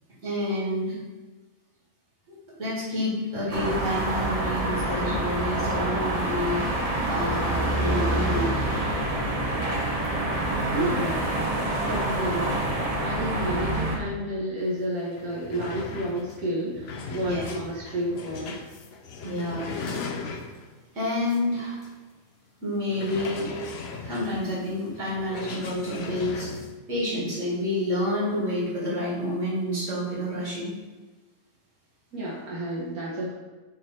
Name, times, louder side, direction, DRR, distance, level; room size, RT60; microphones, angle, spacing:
voice 1, 0.2-1.0 2.6-8.5 17.2-17.4 19.2-19.7 20.9-21.9 22.6-23.5 24.0-26.6 26.9-30.7, left 1 dB, 55° right, -7 dB, 2.6 m, -29 dB
sound 1, 3.5-14.0, right 1 dB, 30° right, 1.0 m, -27 dB
voice 2, 10.7-11.2 11.8-18.6 32.1-33.3, right 1 dB, 90° right, -6 dB, 1.7 m, -31 dB
sound 2, 14.7-14.8 15.1-20.8 21.3-21.4 21.8-21.9 22.9-26.7, left 4 dB, 55° left, 0.8 m, -38 dB
8.8 x 3.2 x 4.3 m, 1.2 s
omnidirectional pair, 1.5 m